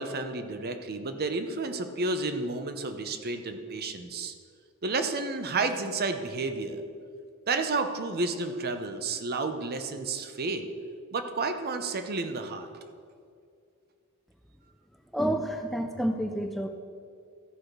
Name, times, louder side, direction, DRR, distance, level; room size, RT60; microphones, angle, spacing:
voice 1, 0.0-4.3 4.8-6.8 7.5-10.7 11.1-12.8, right 3 dB, 45° right, 8 dB, 0.7 m, -31 dB
voice 2, 15.1-16.7, equal, ahead, 4 dB, 0.4 m, -29 dB
14.0 x 4.9 x 6.0 m, 2.3 s
head